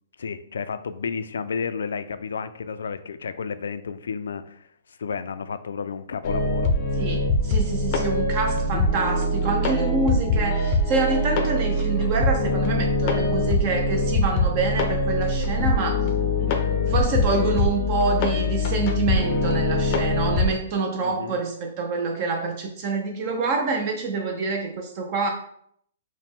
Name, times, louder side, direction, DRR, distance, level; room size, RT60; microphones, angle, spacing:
voice 1, 0.2-4.7 5.0-6.7 21.0-21.4, left 5 dB, 90° left, 12 dB, 0.3 m, -31 dB
sound 1, 6.2-20.5, left 2 dB, 30° left, 0.5 m, -23 dB
voice 2, 7.0-16.1 16.9-25.3, right 4 dB, 35° right, 3 dB, 0.4 m, -26 dB
4.9 x 2.1 x 3.5 m, 0.69 s
hypercardioid pair, 165°, 0 cm